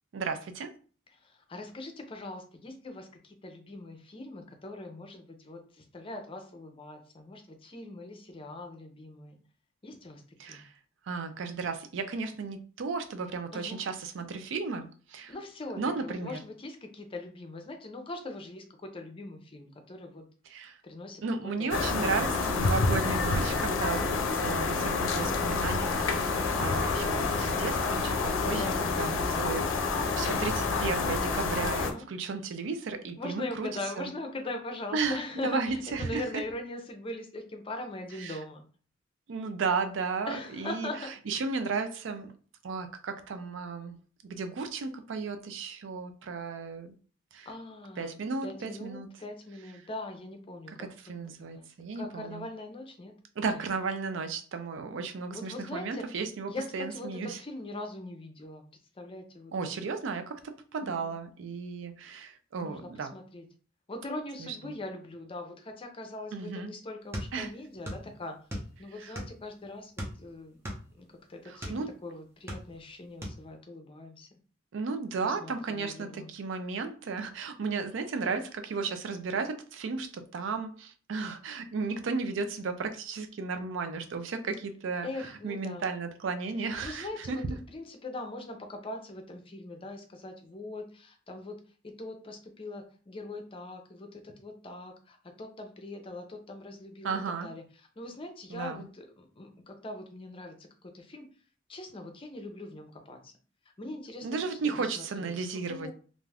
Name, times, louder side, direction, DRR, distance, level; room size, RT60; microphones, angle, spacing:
voice 1, 0.1-0.7 10.4-10.7 11.0-15.3 15.8-16.4 20.5-20.8 21.2-33.7 34.0-34.1 34.9-36.2 38.2-38.4 39.3-40.9 41.3-42.3 42.6-44.0 44.2-46.9 47.3-47.5 48.0-49.1 50.8-52.4 53.4-57.4 59.5-63.1 64.4-64.7 66.3-66.7 67.3-67.5 69.0-69.2 71.5-71.9 74.7-85.1 85.4-87.4 97.0-97.5 98.5-98.8 104.2-105.9, right 4 dB, 70° right, 0.4 m, -34 dB
voice 2, 1.1-9.4 9.8-10.2 10.5-10.6 13.5-13.8 15.3-20.2 20.8-21.2 21.6-22.1 23.9-24.2 26.5-26.9 28.5-29.1 31.8-32.1 33.2-38.6 40.3-41.1 47.5-50.9 51.2-51.7 52.0-53.1 53.5-53.6 55.3-56.1 56.5-58.6 58.9-59.5 60.8-61.2 62.6-63.5 63.9-68.3 68.8-70.6 70.9-74.4 75.2-76.3 85.0-85.9 86.6-91.6 91.8-101.3 101.7-103.3 103.8-105.9, left 2 dB, 30° left, 0.5 m, -41 dB
sound 1, 21.7-31.9, left 4 dB, 90° left, 0.5 m, -28 dB
sound 2, 67.1-68.1 68.3-69.5 69.9-71.8 72.3-72.9 73.2-73.4, equal, 15° right, 0.7 m, -38 dB
2.5 x 2.3 x 3.3 m
head